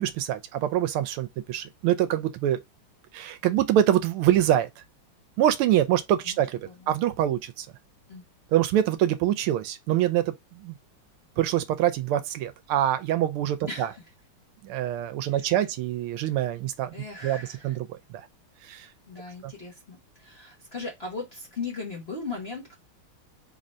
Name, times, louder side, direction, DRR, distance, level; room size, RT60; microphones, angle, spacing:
voice 1, 0.0-2.6 3.1-4.8 5.4-7.7 8.5-10.7 11.4-13.9 14.6-16.9 17.2-18.3 18.6-18.9 19.4-19.5, right 12 dB, 80° right, 1.4 m, -25 dB
voice 2, 6.2-7.0 8.1-8.2 13.7-14.0 15.3-15.5 16.9-17.8 19.1-22.8, left 4 dB, 40° left, 1.0 m, -38 dB
3.8 x 2.5 x 4.2 m
omnidirectional pair, 2.4 m